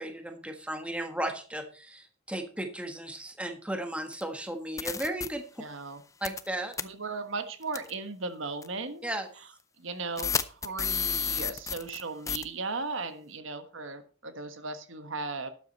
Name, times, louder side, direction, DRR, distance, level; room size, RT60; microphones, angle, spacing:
voice 1, 0.0-5.6 6.2-6.7 9.0-9.3, right 1 dB, 5° right, 5 dB, 1.4 m, -35 dB
sound 1, 4.1-4.2 4.8-5.3 6.2-6.5 6.7-6.8 7.7-7.9 8.6-8.7 10.2-12.0 12.3-12.4, left 7 dB, 15° left, 0.5 m, -30 dB
voice 2, 5.6-6.0 6.8-9.0 9.8-15.5, right 3 dB, 70° right, 9 dB, 1.4 m, -36 dB
12.5 x 9.0 x 4.2 m, 0.38 s
head